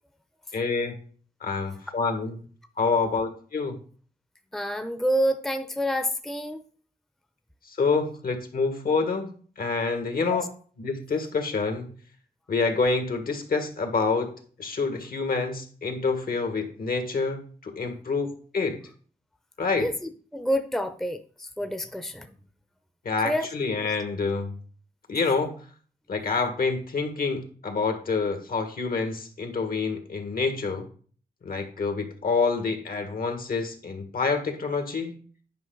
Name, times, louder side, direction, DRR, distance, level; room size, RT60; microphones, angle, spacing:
voice 1, 0.5-1.0 1.4-2.4 2.8-3.8 7.7-9.3 9.6-10.4 10.8-11.9 12.5-14.3 14.6-18.3 18.5-18.8 19.6-19.9 23.1-24.6 25.1-25.5 26.1-30.9 31.4-35.2, left 4 dB, 60° left, 6 dB, 1.8 m, -27 dB
voice 2, 4.5-6.6 10.1-10.5 19.8-22.3 23.2-23.5, equal, ahead, 9 dB, 0.7 m, -28 dB
9.5 x 5.2 x 4.0 m, 0.43 s
cardioid pair, 70°, 17 cm